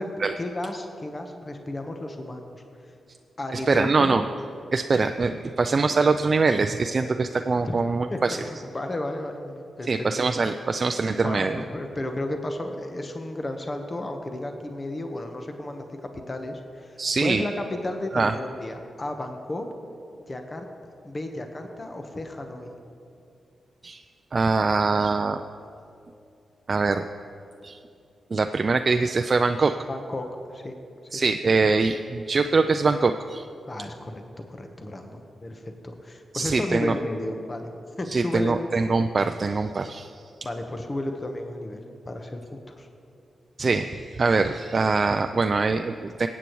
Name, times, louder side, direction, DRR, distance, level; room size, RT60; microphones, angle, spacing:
voice 1, 0.0-2.6 3.4-4.2 7.6-7.8 8.1-8.4 8.7-10.3 11.2-19.7 20.3-20.7 21.0-22.7 29.9-30.7 31.1-31.2 33.7-34.2 34.5-37.7 38.0-38.6 40.4-42.9, left 1 dB, 35° left, 4 dB, 1.0 m, -33 dB
voice 2, 3.5-4.2 4.7-8.4 9.9-11.6 17.0-17.4 18.1-18.3 23.8-24.0 24.3-25.4 26.7-27.1 27.6-27.8 28.3-29.8 31.1-33.5 36.3-37.0 38.1-40.1 43.6-46.3, right 4 dB, 50° right, 6 dB, 0.4 m, -23 dB
19.0 x 8.2 x 3.1 m, 2.5 s
supercardioid pair, 50°, 0 cm